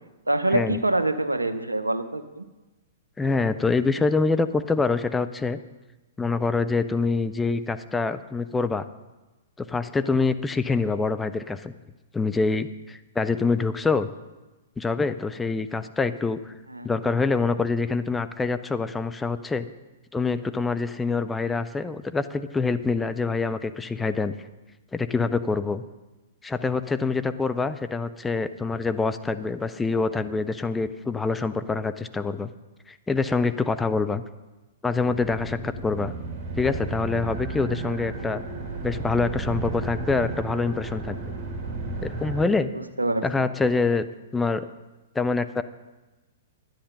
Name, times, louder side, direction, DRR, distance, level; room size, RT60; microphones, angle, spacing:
voice 1, 0.3-2.5 16.7-16.9 42.7-43.5, right 2 dB, 85° right, 11 dB, 0.8 m, -25 dB
voice 2, 3.2-5.6 6.2-8.9 9.6-11.7 12.1-14.1 14.8-16.5 16.8-19.7 20.1-24.3 24.9-25.8 26.4-32.5 32.9-34.2 34.8-36.1 36.6-38.4 38.8-41.2 42.0-42.7 43.2-44.0 44.3-44.7 45.1-45.6, left 4 dB, 10° left, 10 dB, 0.5 m, -25 dB
sound 1, 35.0-42.5, right 3 dB, 40° right, 2.3 m, -33 dB
10.5 x 10.0 x 5.5 m, 1.1 s
figure-of-eight pair, 110°, 0 cm